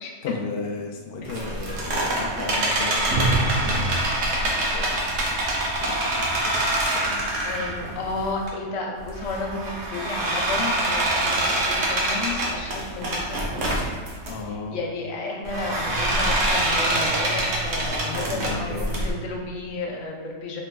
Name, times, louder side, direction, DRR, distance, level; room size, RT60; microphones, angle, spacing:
voice 1, 0.2-6.6 7.0-8.1 14.3-14.8 18.3-19.1, left 3 dB, 65° left, 0 dB, 0.7 m, -36 dB
sound 1, 1.2-8.5 9.0-14.3 15.4-19.1, right 1 dB, 80° right, 1.1 m, -25 dB
voice 2, 7.4-13.7 14.7-20.6, left 3 dB, 80° left, 0 dB, 1.0 m, -32 dB
4.7 x 3.2 x 2.2 m, 1.5 s
omnidirectional pair, 1.3 m